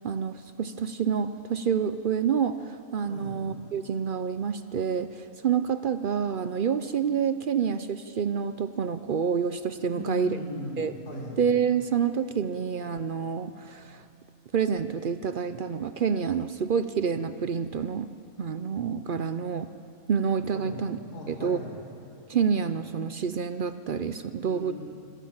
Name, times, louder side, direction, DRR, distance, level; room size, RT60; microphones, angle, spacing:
voice 1, 0.0-10.4 10.8-10.9 11.4-14.0 14.5-18.1 18.4-19.7 20.1-21.0 21.3-21.6 22.3-24.7, right 7 dB, 60° right, 11 dB, 0.5 m, -28 dB
voice 2, 9.9-11.3 20.5-20.8 21.1-21.7 24.4-24.7, left 1 dB, 85° left, -2 dB, 5.0 m, -37 dB
25.0 x 16.0 x 8.8 m, 2.7 s
omnidirectional pair, 1.6 m